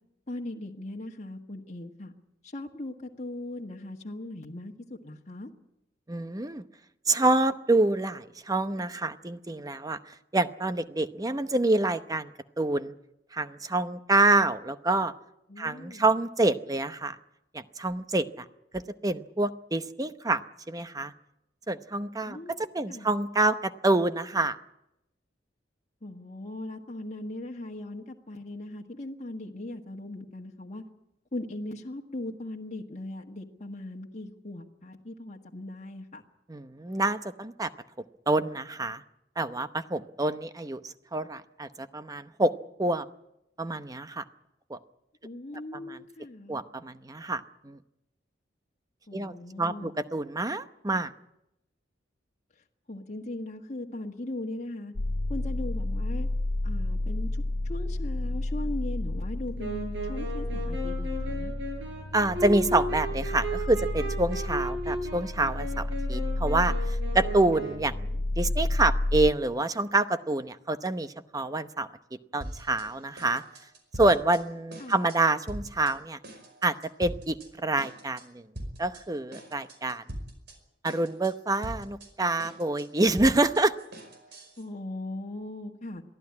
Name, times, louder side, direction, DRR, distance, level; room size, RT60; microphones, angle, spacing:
voice 1, 0.3-2.1 2.5-5.5 15.5-16.0 22.2-23.1 26.0-30.8 31.3-36.2 45.2-46.6 49.1-49.9 52.9-54.9 55.3-56.3 56.6-61.5 74.8-75.2 84.6-86.0, left 1 dB, 40° left, 0 dB, 1.6 m, -39 dB
voice 2, 6.1-6.6 7.1-12.3 12.6-12.9 13.3-15.1 15.6-17.2 17.5-18.4 18.7-20.4 20.7-21.1 21.7-24.6 36.5-37.7 38.3-39.0 39.4-42.5 42.8-43.1 43.6-44.2 44.7-44.8 45.7-46.0 46.5-47.8 49.1-51.1 62.1-71.9 72.3-73.4 74.0-76.2 76.6-78.4 78.8-80.0 80.8-83.7, right 2 dB, 20° right, 11 dB, 0.8 m, -27 dB
sound 1, 55.0-69.3, left 1 dB, 60° left, 0.8 m, -31 dB
Wind instrument woodwind instrument, 59.6-68.0, right 1 dB, 80° right, 8.0 m, -35 dB
sound 2, 72.4-72.9 73.2-74.4 74.7-75.2 75.5-75.9 76.2-77.5 77.8-78.2 78.6-79.0 79.3-80.6 80.8-81.3 81.6-84.6, right 1 dB, 65° right, 5.3 m, -41 dB
23.0 x 14.5 x 9.7 m, 0.86 s
head